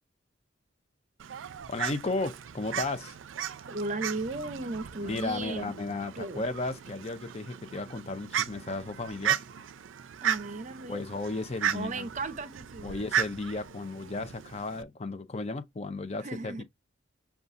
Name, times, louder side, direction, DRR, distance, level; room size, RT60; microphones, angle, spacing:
Fowl, 1.2-14.8, right 9 dB, 80° right, 0.4 m, -36 dB
voice 1, 1.7-3.2 5.1-9.4 10.9-12.0 12.8-16.6, left 3 dB, 35° left, 0.5 m, -34 dB
voice 2, 3.7-5.7 6.1-6.5 10.2-11.0 11.7-13.1 16.2-16.6, right 2 dB, 40° right, 0.6 m, -36 dB
6.7 x 2.4 x 2.5 m
head